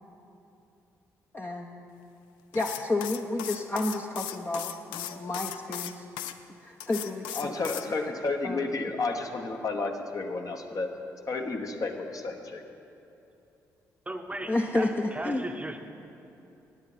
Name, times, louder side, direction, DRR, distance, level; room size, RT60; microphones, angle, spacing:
voice 1, 1.3-1.8 2.5-6.0 6.6-7.6 8.4-8.6 14.5-15.5, left 2 dB, 25° left, 1 dB, 0.8 m, -31 dB
sound 1, 2.5-6.3 6.8-7.9, left 12 dB, 70° left, 0.4 m, -37 dB
voice 2, 7.3-10.9 11.3-12.6, left 3 dB, 45° left, 4 dB, 1.1 m, -31 dB
voice 3, 14.1-15.8, right 1 dB, 15° right, 6 dB, 0.8 m, -36 dB
16.5 x 9.7 x 4.2 m, 2.8 s
figure-of-eight pair, 40°, 8 cm